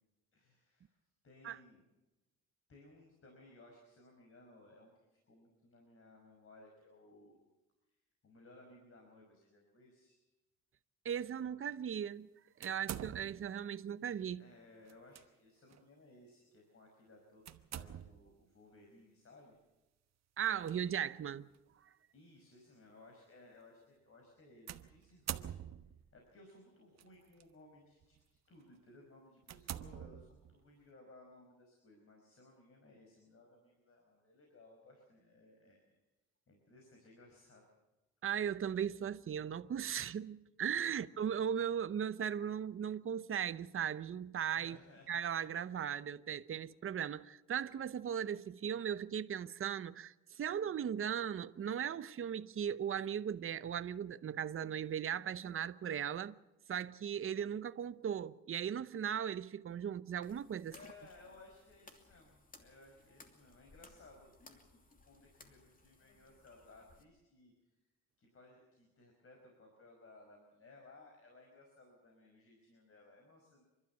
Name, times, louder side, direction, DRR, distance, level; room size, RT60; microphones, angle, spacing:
voice 1, 0.3-0.9 1.2-1.8 2.7-7.4 8.2-10.2 14.3-19.6 22.1-25.6 26.1-28.2 28.5-36.0 36.5-37.6 44.6-45.1 60.7-67.5 68.2-73.6, left 2 dB, 45° left, 5.4 m, -60 dB
voice 2, 11.0-12.3 12.6-14.4 20.4-21.5 38.2-44.8 45.1-56.3 56.7-60.7, right 8 dB, 45° right, 0.9 m, -38 dB
sound 1, 12.6-13.6 14.9-15.2 15.7-15.8 17.5-18.3 20.4-20.7 21.5-21.6 24.7-26.1 27.0-27.4 28.0-28.2 28.7-28.8 29.4-30.7, right 10 dB, 60° right, 1.2 m, -45 dB
sound 2, 60.2-67.0, left 2 dB, 30° left, 2.8 m, -62 dB
29.5 x 12.5 x 7.2 m
cardioid pair, 90°, 30 cm